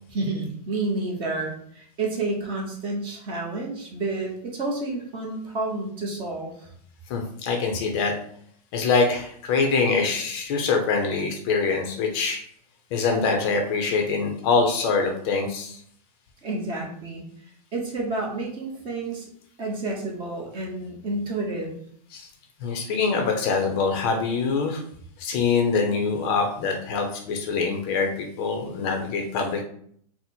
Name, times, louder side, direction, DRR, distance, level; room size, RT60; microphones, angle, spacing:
voice 1, 0.1-6.7 16.4-17.3 17.7-19.3 19.6-21.7, right 2 dB, 25° right, 0 dB, 0.9 m, -30 dB
voice 2, 7.1-8.1 8.7-12.4 12.9-15.8 22.1-22.3 22.6-24.8 25.2-29.6, left 4 dB, 35° left, 3 dB, 0.6 m, -24 dB
4.0 x 2.1 x 4.2 m, 0.63 s
supercardioid pair, 155°, 20 cm